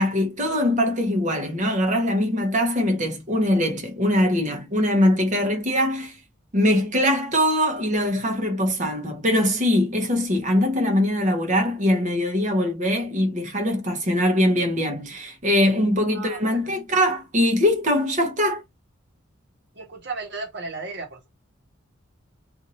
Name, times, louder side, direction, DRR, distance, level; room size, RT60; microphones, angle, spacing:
voice 1, 0.0-6.2 6.5-18.6, left 1 dB, 40° right, 0.9 m, -22 dB
voice 2, 16.1-16.7 19.7-21.3, right 3 dB, 60° right, 1.1 m, -35 dB
2.7 x 2.6 x 2.9 m
head